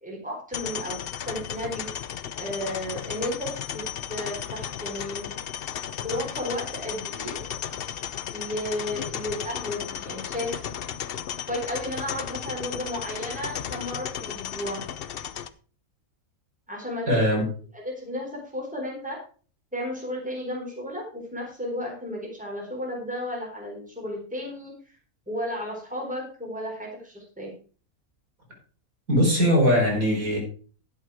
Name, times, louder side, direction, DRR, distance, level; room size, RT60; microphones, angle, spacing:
voice 1, 0.0-1.9 2.4-5.3 6.0-7.4 8.3-10.7 11.5-14.8 16.7-17.1 17.4-17.5 17.7-19.2 19.7-24.7 25.3-27.5, left 1 dB, 5° right, -2 dB, 4.0 m, -33 dB
sound 1, 0.5-15.5, left 9 dB, 55° left, 0.7 m, -34 dB
voice 2, 17.1-17.4 29.1-30.4, equal, 75° right, -2 dB, 5.2 m, -20 dB
11.0 x 7.9 x 4.9 m, 0.39 s
omnidirectional pair, 1.5 m